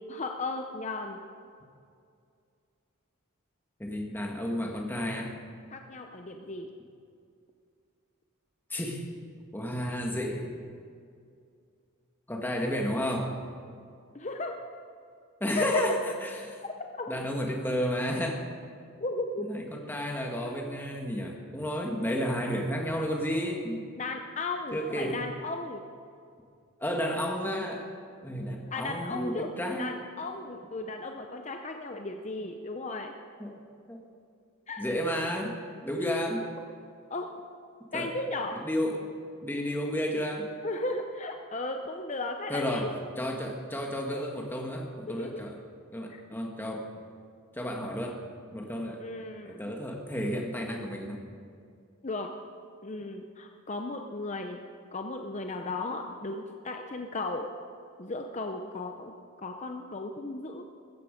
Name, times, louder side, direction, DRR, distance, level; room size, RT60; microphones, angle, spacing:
voice 1, 0.1-1.2 5.7-6.7 14.1-14.6 15.6-15.8 16.6-17.1 19.0-19.4 24.0-25.8 28.7-29.5 29.8-33.1 34.7-34.8 37.1-37.3 37.9-38.5 40.6-42.9 45.1-45.5 46.1-46.2 49.0-49.7 52.0-52.3 52.8-54.6 54.9-57.5 58.0-59.1 59.4-60.6, left 3 dB, 35° left, 4 dB, 0.7 m, -35 dB
voice 2, 3.8-5.3 8.7-9.0 9.5-10.5 12.3-13.4 15.4-16.6 17.1-18.5 19.4-23.8 24.7-25.2 26.8-27.9 28.2-29.9 33.4-34.0 34.8-35.6 35.8-36.5 37.9-38.1 38.6-39.1 39.4-40.5 42.5-45.6 45.9-46.9 47.5-48.2 48.5-49.0 49.4-51.2, equal, 10° left, 1 dB, 1.5 m, -32 dB
15.5 x 14.0 x 5.1 m, 2.3 s
head